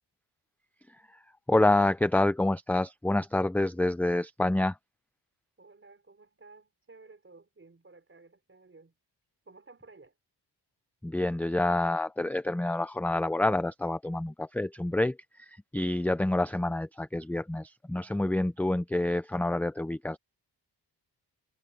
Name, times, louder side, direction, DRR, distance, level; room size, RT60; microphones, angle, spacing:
voice 1, 1.5-4.8 11.0-20.2, left 2 dB, 5° left, 0.4 m, -28 dB
voice 2, 5.6-9.0 9.4-10.2, right 3 dB, 30° right, 4.6 m, -54 dB
wide cardioid pair, 155°, 43 cm